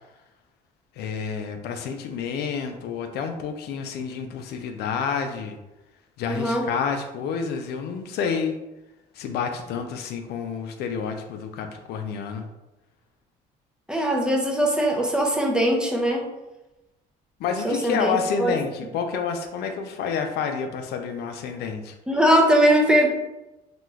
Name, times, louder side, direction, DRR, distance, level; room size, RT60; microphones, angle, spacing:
voice 1, 1.0-5.6 6.2-8.6 9.1-12.4 17.4-21.9, left 6 dB, 70° left, 6 dB, 0.4 m, -29 dB
voice 2, 6.3-6.7 13.9-16.3 17.6-18.5 22.1-23.1, right 1 dB, 5° right, 0 dB, 0.5 m, -21 dB
2.9 x 2.2 x 3.3 m, 0.99 s
cardioid pair, 110°, 17 cm